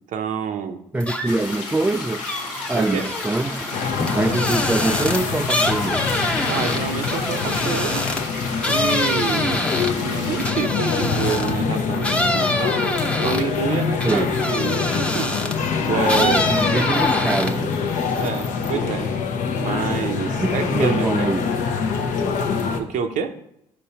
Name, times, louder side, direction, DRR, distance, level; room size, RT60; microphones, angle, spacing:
voice 1, 0.1-0.8 2.7-3.1 6.5-8.1 8.7-9.7 10.0-12.8 13.2-15.3 15.8-16.5 18.1-19.1 19.6-21.3 22.8-23.4, right 7 dB, 60° right, 0.6 m, -27 dB
voice 2, 0.9-2.2 2.7-3.7 4.2-6.1 14.0-14.4 16.5-17.9 20.3-21.4, right 2 dB, 10° right, 0.3 m, -24 dB
sound 1, 1.0-1.5 1.9-11.6 12.0-15.7 16.0-17.7 18.1-18.7, left 1 dB, 10° left, 0.7 m, -25 dB
sound 2, 1.2-10.5, left 3 dB, 75° left, 1.3 m, -33 dB
sound 3, 3.7-22.8, left 5 dB, 60° left, 0.7 m, -25 dB
5.2 x 4.5 x 4.3 m
hypercardioid pair, 55°, 15 cm